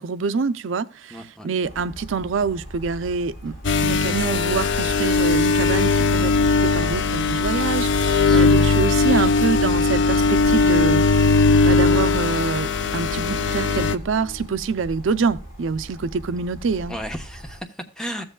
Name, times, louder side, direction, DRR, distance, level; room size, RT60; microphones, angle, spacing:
voice 1, 0.0-3.6 3.8-11.1 11.6-17.0, right 5 dB, 80° right, 0.5 m, -26 dB
voice 2, 1.1-1.5 8.2-8.8 16.9-18.2, equal, 5° left, 0.9 m, -34 dB
sound 1, 1.6-17.6, equal, 50° left, 3.5 m, -40 dB
sound 2, 3.6-14.0, left 3 dB, 65° left, 0.6 m, -19 dB
Bowed string instrument, 10.9-15.1, left 4 dB, 30° right, 4.2 m, -42 dB
15.0 x 7.7 x 2.2 m
head